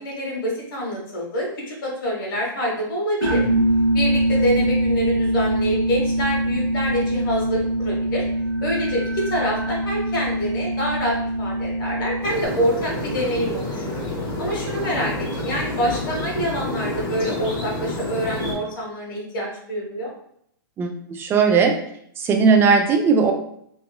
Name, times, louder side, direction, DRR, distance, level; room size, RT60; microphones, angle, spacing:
voice 1, 0.0-3.4 3.9-8.2 8.6-13.9 14.4-15.1 15.4-20.1, equal, 65° left, -2 dB, 1.3 m, -26 dB
sound 1, 3.2-12.5, right 1 dB, 90° right, 0.7 m, -23 dB
sound 2, 12.2-18.5, left 1 dB, 40° left, 1.2 m, -28 dB
voice 2, 20.8-21.7 22.2-23.3, right 5 dB, 20° right, 4 dB, 0.3 m, -17 dB
2.9 x 2.5 x 2.2 m, 0.69 s
hypercardioid pair, 135°, 12 cm